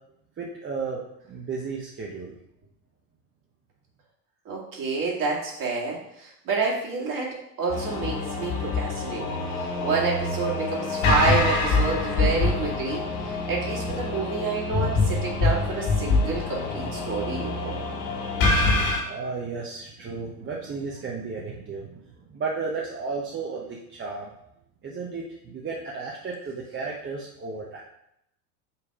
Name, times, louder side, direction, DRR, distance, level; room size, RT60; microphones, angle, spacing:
voice 1, 0.4-1.0 1.3-2.3 19.0-22.0 22.3-24.3 24.8-27.8, right 4 dB, 25° right, -3 dB, 1.0 m, -33 dB
voice 2, 4.5-9.3 9.5-17.8, right 4 dB, 40° right, -3 dB, 2.4 m, -29 dB
sound 1, 7.7-19.0, left 3 dB, 60° left, 2.5 m, -25 dB
5.7 x 3.5 x 4.8 m, 0.78 s
hypercardioid pair, 85°, 48 cm